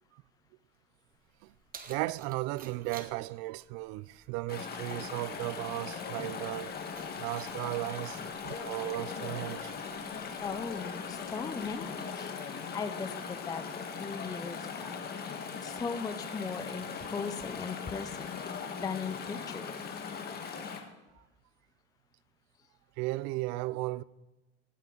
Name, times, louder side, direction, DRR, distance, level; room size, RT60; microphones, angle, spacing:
Keys jangling, 1.1-12.1, right 6 dB, 30° right, 1.2 m, -56 dB
voice 1, 1.9-6.8 7.2-9.7 23.0-24.0, right 20 dB, 60° right, 0.5 m, -35 dB
Chatter / Stream, 4.5-20.8, left 6 dB, 30° left, 1.5 m, -39 dB
voice 2, 10.4-12.3 12.7-15.1 15.6-18.3 18.8-19.8, left 5 dB, 10° left, 0.5 m, -38 dB
17.0 x 9.1 x 3.9 m
supercardioid pair, 130°, 31 cm